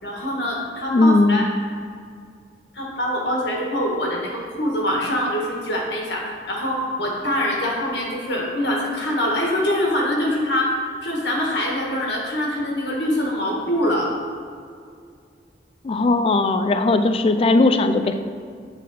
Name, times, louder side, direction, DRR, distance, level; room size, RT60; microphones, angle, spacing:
voice 1, 0.0-1.4 2.7-10.7 11.0-14.1, left 1 dB, 75° left, -2 dB, 1.5 m, -24 dB
voice 2, 0.9-1.4 15.8-18.2, left 2 dB, 30° left, 9 dB, 0.3 m, -18 dB
8.3 x 4.0 x 4.1 m, 2.2 s
head